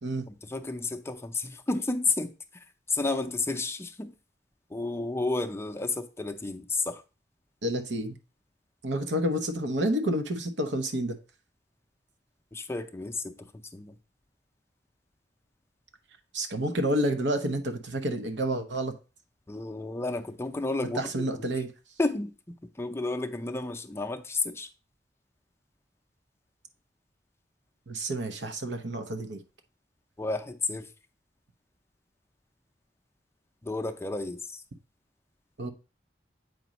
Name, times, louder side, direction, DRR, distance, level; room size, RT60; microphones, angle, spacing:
voice 1, 0.3-4.1 4.7-7.0 12.5-14.0 19.5-21.5 22.0-22.3 22.8-24.7 30.2-30.9 33.6-34.6, left 3 dB, 15° left, 0.5 m, -32 dB
voice 2, 7.6-8.2 8.8-11.1 16.3-18.9 21.0-21.7 27.9-29.4 35.6-35.7, right 1 dB, 85° right, 0.9 m, -29 dB
7.7 x 5.1 x 3.0 m
head